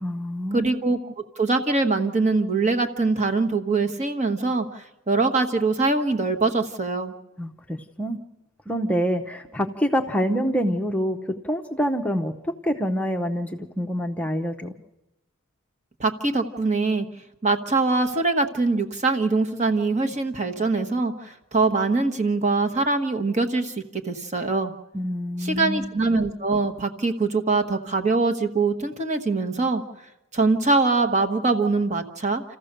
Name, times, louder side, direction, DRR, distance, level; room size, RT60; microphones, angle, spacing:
voice 1, 0.0-0.7 7.4-8.2 8.7-14.7 24.9-25.9, equal, 5° left, 3 dB, 0.8 m, -26 dB
voice 2, 0.5-1.0 1.4-7.1 16.0-17.1 17.4-24.7 25.4-29.8 30.3-32.4, right 3 dB, 35° right, 6 dB, 1.2 m, -23 dB
28.0 x 14.5 x 6.7 m, 0.94 s
head